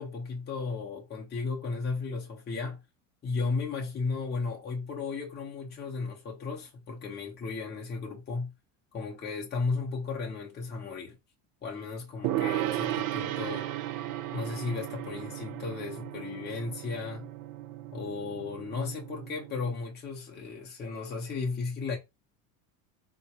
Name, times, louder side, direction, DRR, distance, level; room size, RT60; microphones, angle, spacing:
voice 1, 0.0-2.8 3.2-8.5 8.9-11.2 11.6-13.7 14.3-17.3 17.9-22.0, left 4 dB, 25° left, 0.9 m, -35 dB
Gong, 12.2-19.7, right 13 dB, 50° right, 0.5 m, -35 dB
3.8 x 2.3 x 2.8 m
supercardioid pair, 105°, 42 cm